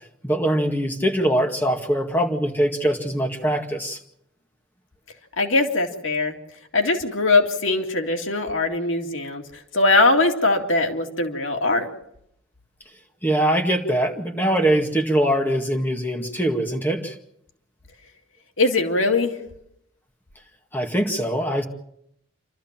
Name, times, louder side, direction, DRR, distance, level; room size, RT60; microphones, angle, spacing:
voice 1, 0.2-4.0 13.2-17.1 20.7-21.6, right 1 dB, 10° left, 2 dB, 2.0 m, -22 dB
voice 2, 5.4-6.3 6.7-9.4 9.7-11.9 18.6-19.3, left 3 dB, 85° left, 3 dB, 2.3 m, -21 dB
28.5 x 13.0 x 7.4 m, 0.76 s
head